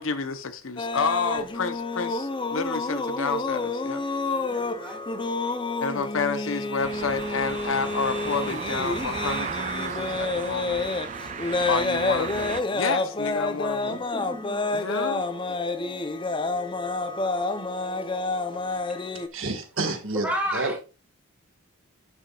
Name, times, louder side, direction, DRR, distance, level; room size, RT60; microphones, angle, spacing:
voice 1, 0.0-4.0 5.8-10.9 11.6-14.0 14.7-15.6, left 4 dB, 60° left, 0.8 m, -30 dB
sound 1, 0.8-19.3, left 3 dB, 20° left, 0.6 m, -29 dB
voice 2, 4.4-5.0 13.9-14.9 15.6-16.0 20.2-20.8, equal, 5° right, 2.3 m, -33 dB
sound 2, 6.8-12.6, right 7 dB, 30° right, 0.3 m, -35 dB
voice 3, 19.3-20.7, right 3 dB, 60° right, 1.8 m, -29 dB
11.5 x 7.2 x 2.4 m
head